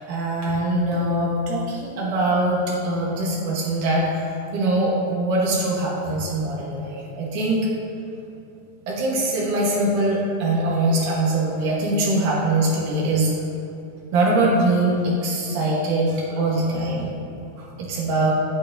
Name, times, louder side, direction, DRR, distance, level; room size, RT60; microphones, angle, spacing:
voice 1, 0.1-4.2 4.5-7.6 8.9-13.3 14.1-17.1 17.6-18.3, right 2 dB, 85° right, -4 dB, 2.8 m, -22 dB
8.7 x 8.1 x 2.6 m, 2.9 s
omnidirectional pair, 3.5 m